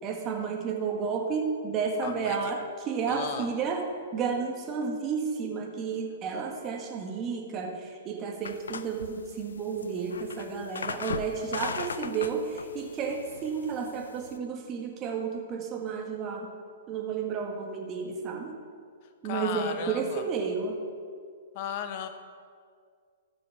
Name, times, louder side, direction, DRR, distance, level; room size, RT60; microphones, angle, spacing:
voice 1, 0.0-3.8 4.1-16.5 16.9-18.5 19.2-20.8, right 5 dB, 30° right, 2 dB, 1.7 m, -32 dB
voice 2, 2.0-2.4 3.1-3.5 19.2-20.2 21.5-22.1, left 8 dB, 45° left, 8 dB, 1.0 m, -35 dB
sound 1, 8.4-14.4, left 5 dB, 75° left, 0.5 m, -38 dB
13.5 x 6.2 x 6.0 m, 2.1 s
hypercardioid pair, 115°, 0 cm